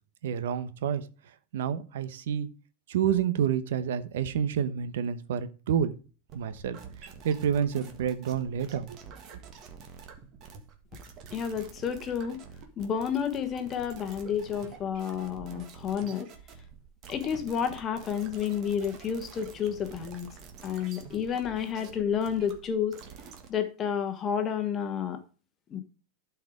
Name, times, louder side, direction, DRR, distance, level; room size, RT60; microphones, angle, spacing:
voice 1, 0.2-1.1 1.5-2.5 2.9-5.9 6.3-9.0, right 8 dB, 80° right, 1.0 m, -29 dB
sound 1, 6.3-23.5, right 6 dB, 30° right, 1.6 m, -48 dB
voice 2, 11.3-12.4 12.8-16.3 17.1-20.3 20.6-23.0 23.5-25.2 25.7-25.8, left 8 dB, 25° left, 1.2 m, -30 dB
12.0 x 4.7 x 4.9 m
supercardioid pair, 160°, 0 cm